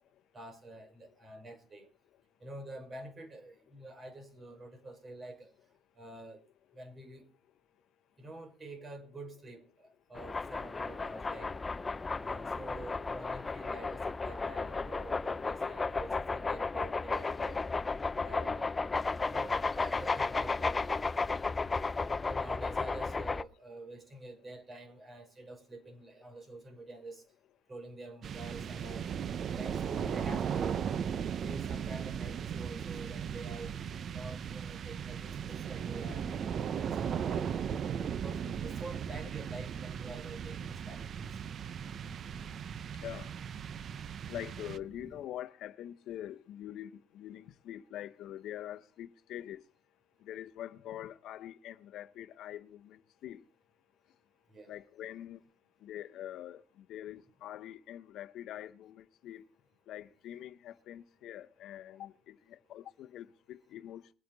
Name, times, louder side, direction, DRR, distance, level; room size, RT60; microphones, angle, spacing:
voice 1, 0.3-1.9 2.4-5.5 6.0-6.4 6.7-7.3 8.2-11.5 12.2-17.6 18.2-18.7 19.2-20.8 22.1-27.2 27.7-29.1 29.5-31.0 31.4-33.8 34.1-36.3 36.7-41.2 54.5-54.7, right 2 dB, 30° right, 5.7 m, -48 dB
sound 1, 10.2-23.4, left 4 dB, 20° left, 0.6 m, -34 dB
sound 2, 28.2-45.2, right 8 dB, 50° right, 0.8 m, -37 dB
voice 2, 44.3-46.9 47.1-49.6 50.3-53.4 54.7-55.4 55.8-56.6 56.9-59.4 59.9-62.4 62.7-64.1, left 12 dB, 65° left, 0.9 m, -44 dB
22.0 x 9.4 x 4.0 m
cardioid pair, 110°, 0 cm